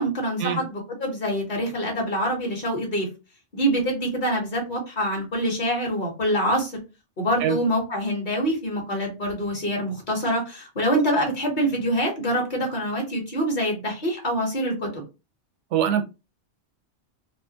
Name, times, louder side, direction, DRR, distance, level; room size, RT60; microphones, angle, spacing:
voice 1, 0.0-3.1 3.5-6.8 7.2-15.0, equal, 45° left, 1.0 m, -25 dB
voice 2, 15.7-16.0, right 9 dB, 90° right, 0.9 m, -23 dB
2.5 x 2.4 x 2.8 m
omnidirectional pair, 1.2 m